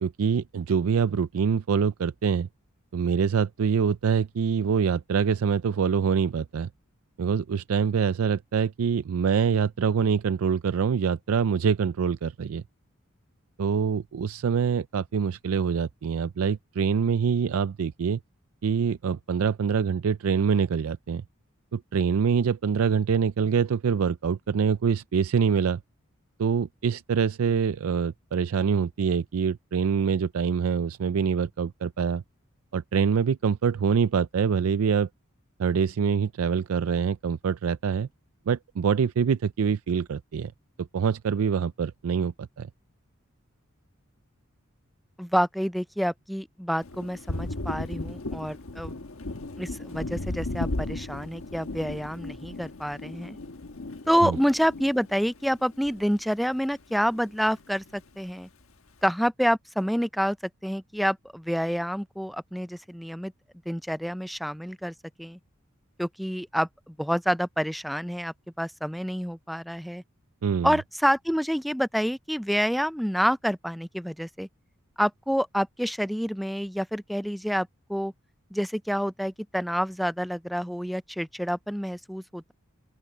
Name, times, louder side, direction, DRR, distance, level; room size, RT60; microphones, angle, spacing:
voice 1, 0.0-2.5 2.9-6.7 7.2-12.6 13.6-18.2 18.6-21.2 21.7-25.8 26.4-32.2 32.7-35.1 35.6-38.1 38.5-40.5 40.8-42.7 54.2-54.4 70.4-70.7, right 6 dB, 85° right, 0.4 m, -25 dB
voice 2, 45.2-49.0 49.6-53.4 54.1-58.5 59.0-60.4 60.6-63.3 63.7-65.4 66.0-70.0 70.6-74.5 75.0-78.1 78.5-82.5, equal, ahead, 0.4 m, -28 dB
Thunder, 46.8-56.6 56.9-58.0, left 2 dB, 75° left, 1.3 m, -36 dB
open air
head